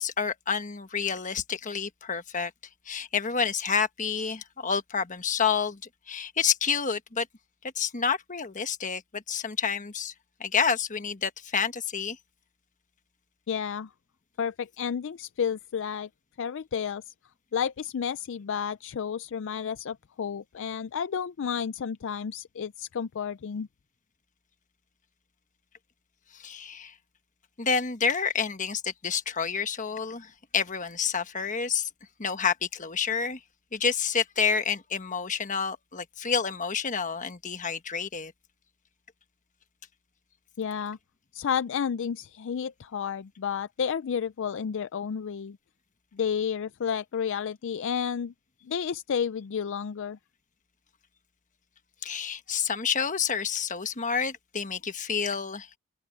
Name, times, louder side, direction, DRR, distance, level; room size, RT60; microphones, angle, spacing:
voice 1, 0.0-2.5 2.9-5.8 6.1-7.3 7.7-10.1 10.4-12.2 26.3-26.9 27.6-31.9 32.2-33.4 33.7-38.3 52.0-55.7, left 6 dB, 35° left, 1.3 m, -29 dB
voice 2, 13.5-13.9 14.4-16.1 16.4-17.1 17.5-23.7 40.6-41.0 41.3-45.6 46.1-48.3 48.6-50.2, left 7 dB, 60° left, 0.4 m, -31 dB
open air
head